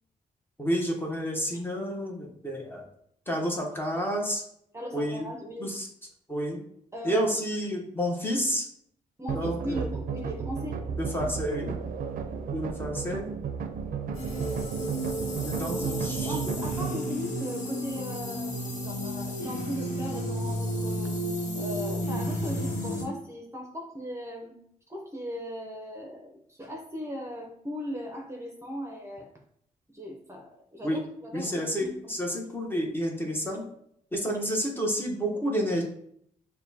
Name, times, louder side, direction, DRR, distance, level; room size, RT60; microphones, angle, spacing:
voice 1, 0.6-2.8 3.3-4.4 4.9-5.3 5.6-5.9 6.3-6.6 7.0-8.7 9.3-9.9 11.0-11.7 12.5-13.3 14.3-14.9 15.4-16.4 30.8-31.0 31.3-33.6 34.1-35.8, equal, 15° left, 0 dB, 0.9 m, -30 dB
voice 2, 4.7-5.7 6.9-7.3 9.2-11.3 15.3-21.2 21.5-24.5 24.9-29.3 29.9-32.2, equal, 20° right, 1 dB, 0.7 m, -38 dB
sound 1, 9.3-17.0, right 6 dB, 70° right, 0.4 m, -34 dB
sound 2, 14.1-23.0, equal, 55° left, 1.3 m, -32 dB
6.6 x 2.2 x 2.7 m, 0.69 s
cardioid pair, 100°, 15 cm